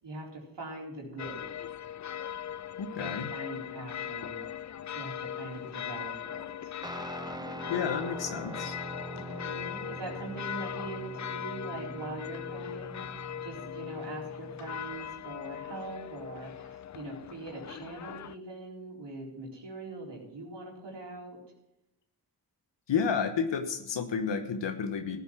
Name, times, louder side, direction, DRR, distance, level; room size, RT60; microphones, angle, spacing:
voice 1, 0.0-1.7 2.9-4.5 4.9-6.7 9.1-21.4, right 2 dB, 75° right, -2 dB, 4.2 m, -42 dB
sound 1, 1.2-18.4, left 10 dB, 45° left, 0.4 m, -40 dB
voice 2, 2.8-3.3 7.7-8.8 22.9-25.2, left 6 dB, 85° left, 7 dB, 1.1 m, -31 dB
Guitar, 6.8-15.0, right 2 dB, 10° right, 0.6 m, -43 dB
14.5 x 8.3 x 6.2 m, 0.87 s
cardioid pair, 50°, 42 cm